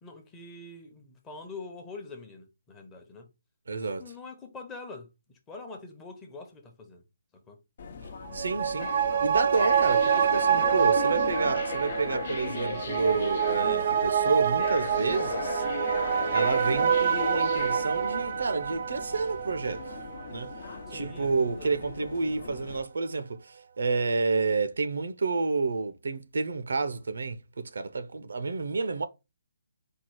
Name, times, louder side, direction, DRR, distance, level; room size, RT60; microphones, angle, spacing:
voice 1, 0.0-3.3 4.0-5.1 5.5-7.0 7.5-7.6 20.9-21.8, left 3 dB, 10° left, 0.8 m, -44 dB
voice 2, 3.7-4.0 8.3-15.6 16.3-19.8 20.3-20.5 20.9-29.1, right 4 dB, 75° right, 0.6 m, -29 dB
sound 1, 7.8-22.8, left 5 dB, 45° left, 0.7 m, -37 dB
sound 2, 8.3-21.1 21.5-21.6, right 8 dB, 40° right, 0.3 m, -27 dB
4.5 x 2.4 x 4.6 m
hypercardioid pair, 165°, 0 cm